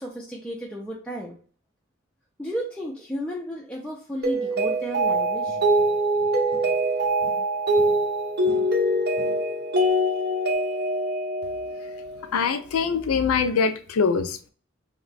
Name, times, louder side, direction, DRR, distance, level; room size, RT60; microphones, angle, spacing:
voice 1, 0.0-1.4 2.4-5.6, equal, 5° left, -3 dB, 0.4 m, -33 dB
Mallet percussion, 4.2-12.4, right 1 dB, 50° right, 0.6 m, -24 dB
sound 1, 5.1-6.9 7.2-9.8, right 2 dB, 10° right, 0.7 m, -48 dB
voice 2, 12.3-14.5, left 5 dB, 90° left, 9 dB, 0.4 m, -23 dB
2.7 x 2.2 x 4.0 m, 0.43 s
head